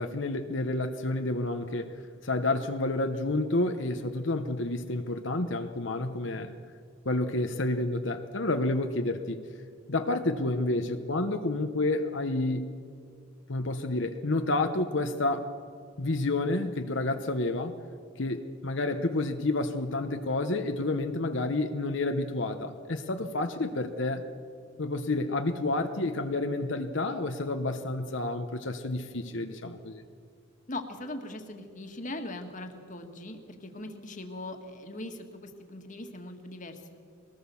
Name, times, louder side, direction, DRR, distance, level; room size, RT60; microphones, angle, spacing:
voice 1, 0.0-2.0 2.2-6.5 7.0-9.4 9.9-12.7 13.5-15.5 16.0-17.7 18.2-24.2 24.8-30.0, left 2 dB, 60° left, 7 dB, 1.0 m, -29 dB
voice 2, 30.7-37.0, left 1 dB, 40° left, 5 dB, 1.9 m, -40 dB
23.0 x 18.5 x 7.1 m, 2.2 s
head